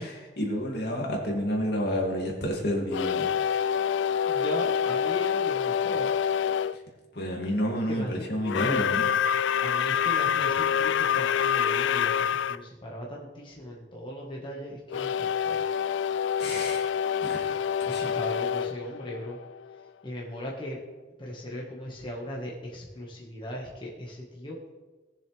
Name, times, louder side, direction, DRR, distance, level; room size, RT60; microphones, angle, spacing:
voice 1, 0.0-3.3 6.7-6.8 7.1-9.1 16.4-16.9 17.2-18.1, equal, 65° left, -1 dB, 2.5 m, -30 dB
sound 1, 2.9-6.8 8.4-12.6 14.9-19.8, left 8 dB, 90° left, 0.3 m, -27 dB
voice 2, 4.3-6.1 7.9-8.3 8.6-8.9 9.6-15.6 17.8-19.4 20.0-20.8 21.2-24.6, equal, 30° left, -4 dB, 1.6 m, -38 dB
19.0 x 7.0 x 3.4 m, 1.3 s
head